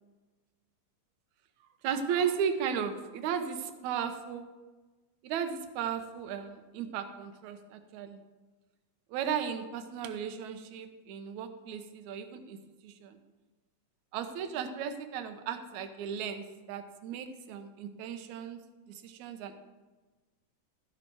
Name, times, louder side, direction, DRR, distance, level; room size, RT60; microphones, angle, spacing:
voice 1, 1.8-4.5 5.2-8.2 9.1-12.6 12.8-13.2 14.1-18.6 18.9-19.6, right 7 dB, 75° right, 7 dB, 2.1 m, -35 dB
13.0 x 8.8 x 4.6 m, 1.3 s
omnidirectional pair, 3.6 m